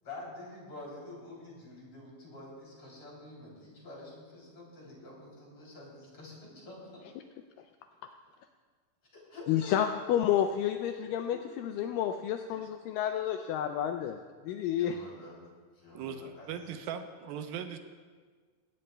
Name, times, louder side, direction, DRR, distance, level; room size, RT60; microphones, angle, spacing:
voice 1, 0.0-7.0 9.1-9.7 14.6-15.4 15.7-16.9, left 2 dB, 40° left, -4 dB, 3.6 m, -48 dB
voice 2, 9.5-15.0, left 10 dB, 80° left, 6 dB, 2.0 m, -30 dB
voice 3, 15.9-17.8, right 8 dB, 80° right, 7 dB, 2.5 m, -39 dB
17.0 x 15.5 x 2.2 m, 1.5 s
omnidirectional pair, 4.3 m